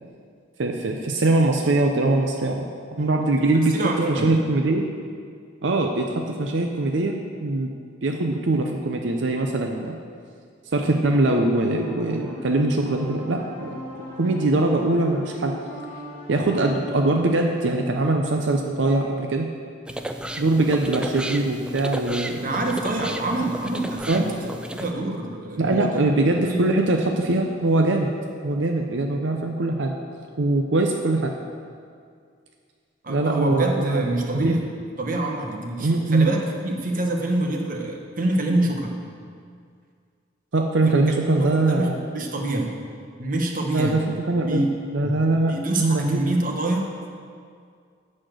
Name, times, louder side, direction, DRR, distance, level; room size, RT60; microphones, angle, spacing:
voice 1, 0.6-2.6 2.9-3.8 4.1-4.9 5.6-6.1 6.4-7.7 8.0-9.9 10.7-13.7 14.2-15.5 16.3-19.5 20.4-22.5 24.1-24.2 25.6-28.1 28.4-29.9 30.4-31.3 33.1-34.6 35.8-36.3 40.5-42.0 43.7-44.0 44.3-44.6 44.9-45.5 45.8-46.2, right 2 dB, 75° right, 2 dB, 0.6 m, -22 dB
voice 2, 3.7-4.4 22.4-24.4 24.7-25.9 26.5-26.6 33.0-34.6 35.0-39.0 41.4-42.7 43.2-44.0 44.5-44.7 45.0-45.1 45.5-46.9, right 2 dB, 45° right, 1 dB, 1.1 m, -26 dB
sound 1, 11.1-16.7, equal, 10° left, 1.8 m, -37 dB
sound 2, 19.9-24.9, right 1 dB, 5° right, 0.4 m, -33 dB
11.5 x 4.3 x 7.7 m, 2.2 s
head